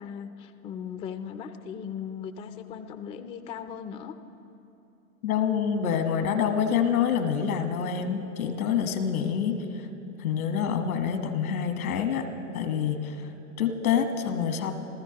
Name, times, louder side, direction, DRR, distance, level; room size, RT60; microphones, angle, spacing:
voice 1, 0.0-4.2, left 7 dB, 15° left, 9 dB, 0.3 m, -38 dB
voice 2, 5.2-9.9 10.2-12.3 12.5-13.3 13.6-14.7, left 7 dB, 80° left, 7 dB, 1.4 m, -27 dB
28.0 x 14.0 x 2.9 m, 2.8 s
hypercardioid pair, 110°, 42 cm